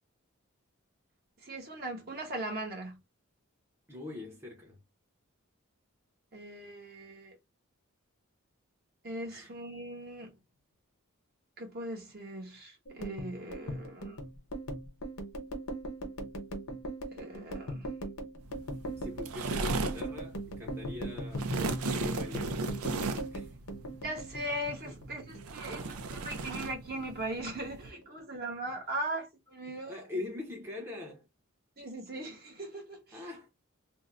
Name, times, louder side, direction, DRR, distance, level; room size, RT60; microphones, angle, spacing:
voice 1, 1.4-3.0 6.3-7.4 9.0-10.4 11.6-14.2 17.1-17.9 24.0-30.2 31.8-33.2, right 1 dB, 45° right, 1.1 m, -39 dB
voice 2, 3.9-4.8 9.3-9.5 19.0-21.5 21.9-22.7 23.3-23.6 24.8-25.0 29.7-31.3 33.1-33.5, left 2 dB, 10° right, 0.7 m, -42 dB
sound 1, 12.9-25.4 25.7-26.7 27.0-27.4 27.7-28.4, equal, 75° left, 1.0 m, -39 dB
sound 2, 18.4-27.9, right 3 dB, 90° right, 0.5 m, -37 dB
2.6 x 2.1 x 3.7 m
head